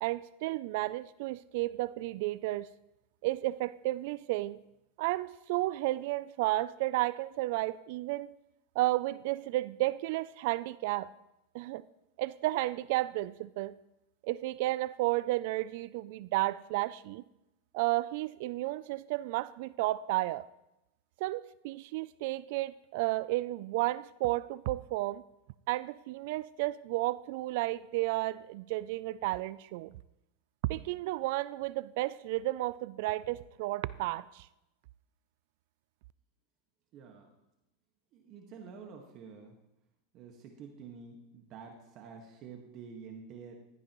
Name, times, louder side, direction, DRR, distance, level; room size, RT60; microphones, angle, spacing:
voice 1, 0.0-2.7 3.2-4.6 5.0-8.3 8.8-11.1 11.5-11.8 12.2-13.7 14.2-17.2 17.7-20.5 21.2-25.2 25.7-30.0 30.7-34.5, right 18 dB, 60° right, 0.3 m, -32 dB
voice 2, 36.9-37.3 38.1-39.6 40.1-43.6, right 6 dB, 45° right, 1.5 m, -48 dB
15.0 x 12.5 x 3.0 m
supercardioid pair, 135°, 0 cm